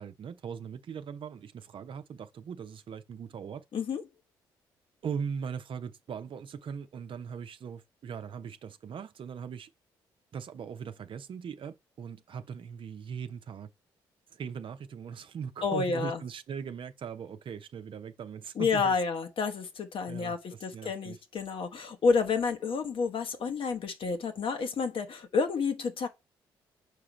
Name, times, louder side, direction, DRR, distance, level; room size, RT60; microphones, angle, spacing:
voice 1, 0.0-3.6 5.0-9.7 10.3-13.7 14.3-19.0 20.1-21.2, right 7 dB, 50° right, 0.7 m, -40 dB
voice 2, 15.6-16.2 18.6-26.1, left 5 dB, 55° left, 1.1 m, -30 dB
6.6 x 4.9 x 3.2 m
hypercardioid pair, 45°, 11 cm